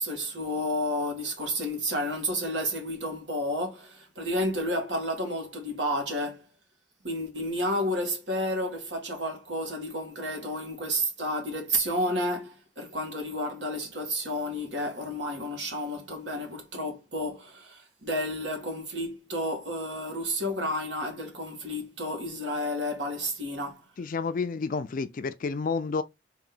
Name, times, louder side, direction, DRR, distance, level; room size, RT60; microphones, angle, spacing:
voice 1, 0.0-6.4 7.0-23.8, equal, 70° right, 1.7 m, -31 dB
voice 2, 24.0-26.0, left 4 dB, 50° left, 0.4 m, -30 dB
3.9 x 2.7 x 3.7 m
head